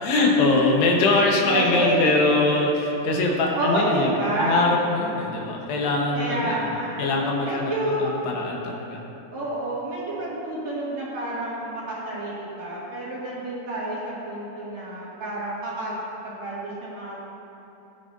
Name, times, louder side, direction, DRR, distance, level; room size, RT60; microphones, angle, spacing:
voice 1, 0.0-4.1 4.4-6.6 7.0-9.0, left 2 dB, 75° left, -1 dB, 3.2 m, -22 dB
voice 2, 1.0-1.9 3.5-4.6 6.1-8.1 9.3-15.9 16.2-17.2, right 1 dB, 45° right, -8 dB, 3.2 m, -29 dB
19.0 x 10.5 x 2.7 m, 2.9 s
omnidirectional pair, 4.9 m